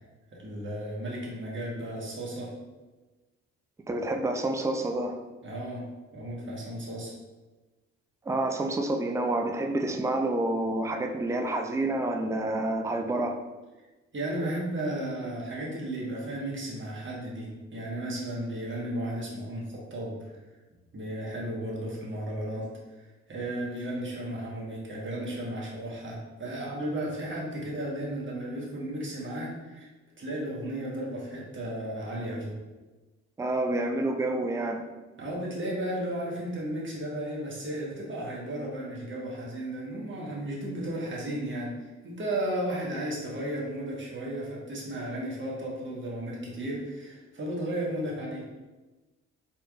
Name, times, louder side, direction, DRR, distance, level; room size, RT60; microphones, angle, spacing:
voice 1, 0.3-2.5 5.4-5.8 6.1-7.1 14.1-20.4 20.9-29.9 30.2-32.5 35.2-41.7 42.0-48.5, right 1 dB, 35° right, -4 dB, 1.5 m, -34 dB
voice 2, 3.9-5.2 8.3-13.4 33.4-34.8, right 2 dB, 10° right, 4 dB, 0.4 m, -28 dB
4.1 x 3.0 x 2.5 m, 1.2 s
hypercardioid pair, 50°, 35 cm